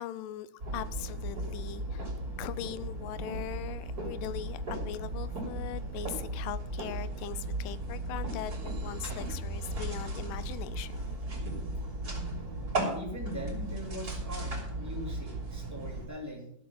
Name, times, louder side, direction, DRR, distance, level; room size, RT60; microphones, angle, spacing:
voice 1, 0.0-2.1 2.4-11.2, left 12 dB, 90° left, 15 dB, 2.3 m, -40 dB
sound 1, 0.6-16.1, right 2 dB, 30° right, 3.3 m, -36 dB
voice 2, 12.8-16.5, equal, 5° right, -1 dB, 2.4 m, -41 dB
13.5 x 7.0 x 7.0 m, 0.69 s
omnidirectional pair, 3.8 m